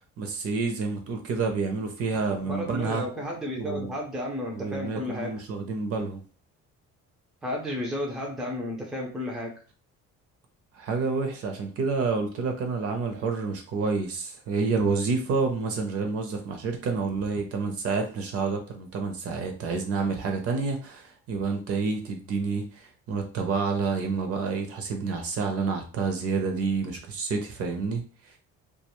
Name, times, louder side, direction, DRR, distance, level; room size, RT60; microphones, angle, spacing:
voice 1, 0.0-3.0 3.6-3.9 4.5-6.2 10.7-28.0, right 4 dB, 55° right, 4 dB, 0.6 m, -29 dB
voice 2, 2.4-5.3 7.4-9.6, left 1 dB, ahead, -1 dB, 0.4 m, -32 dB
2.4 x 2.2 x 2.9 m, 0.37 s
cardioid pair, 170°, 29 cm